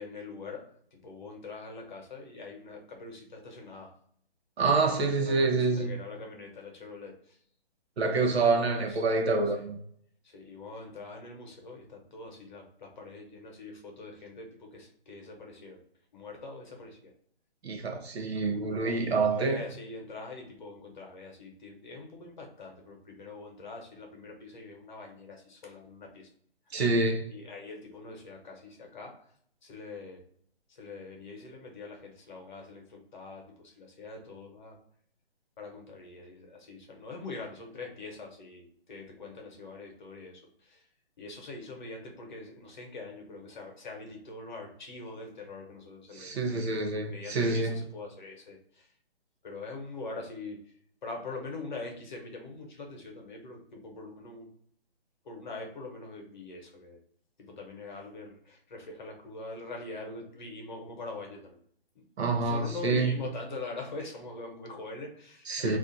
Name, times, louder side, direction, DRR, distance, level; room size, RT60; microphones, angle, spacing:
voice 1, 0.0-3.9 4.8-7.4 8.5-9.0 9.4-9.7 10.2-15.8 16.1-17.1 19.0-26.3 26.7-26.8 27.3-29.3 29.6-30.2 30.7-34.8 35.6-40.9 41.2-48.9 49.4-50.7 51.0-54.5 55.2-57.0 57.4-61.6 61.9-62.0 62.3-65.8, left 3 dB, 50° left, 0.9 m, -43 dB
voice 2, 4.6-5.9 8.0-9.8 17.6-19.6 26.7-27.2 46.1-47.8 62.2-63.2 65.5-65.8, right 3 dB, 85° right, 0.8 m, -27 dB
2.5 x 2.4 x 3.9 m
hypercardioid pair, 165°, 31 cm